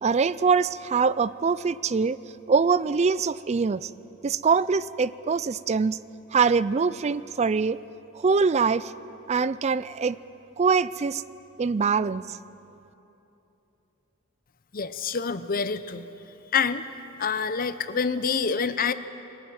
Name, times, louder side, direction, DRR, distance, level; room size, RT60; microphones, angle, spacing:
voice 1, 0.0-2.2 2.5-3.9 4.2-6.0 6.3-7.8 8.1-8.9 9.3-10.2 10.6-11.2 11.6-12.4, right 5 dB, 30° right, 18 dB, 0.4 m, -23 dB
voice 2, 14.7-16.1 16.5-16.8 17.2-18.9, left 5 dB, 40° left, 12 dB, 0.7 m, -26 dB
22.5 x 14.5 x 9.3 m, 2.9 s
head